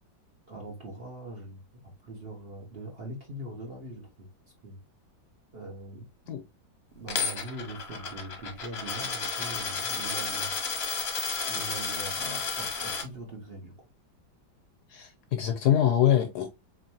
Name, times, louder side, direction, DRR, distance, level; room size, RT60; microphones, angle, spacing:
voice 1, 0.5-4.3 4.6-4.8 5.5-6.1 6.9-10.5 11.4-13.7, right 1 dB, 40° right, 1.0 m, -42 dB
Coin (dropping), 7.1-13.0, left 5 dB, 45° left, 0.9 m, -32 dB
voice 2, 14.9-16.5, left 10 dB, 70° left, 1.0 m, -24 dB
4.0 x 3.1 x 2.7 m
omnidirectional pair, 2.1 m